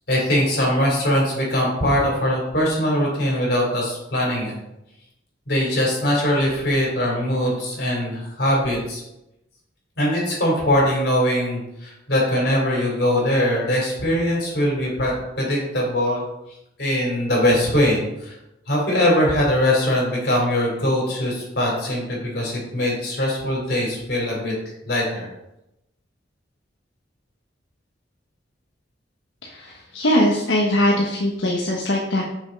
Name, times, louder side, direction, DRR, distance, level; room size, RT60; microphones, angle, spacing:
voice 1, 0.1-4.5 5.5-9.0 10.0-16.2 16.8-18.3 18.7-24.5 24.9-25.3, left 1 dB, 55° left, -3 dB, 3.4 m, -21 dB
voice 2, 29.4-32.2, left 1 dB, 80° left, -1 dB, 1.1 m, -21 dB
6.7 x 6.4 x 5.3 m, 0.89 s
head